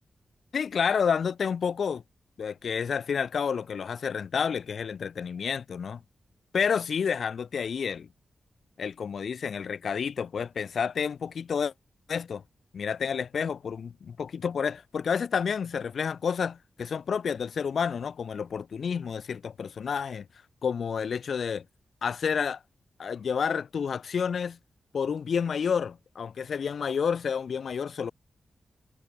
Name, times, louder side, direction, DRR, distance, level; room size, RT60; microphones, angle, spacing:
voice 1, 0.5-2.0 2.4-6.0 6.5-8.1 8.8-11.7 12.1-12.4 12.7-20.3 20.6-21.6 22.0-22.6 23.0-24.6 24.9-28.1, left 6 dB, 70° left, 2.1 m, -29 dB
wide cardioid pair, 110°, 0 cm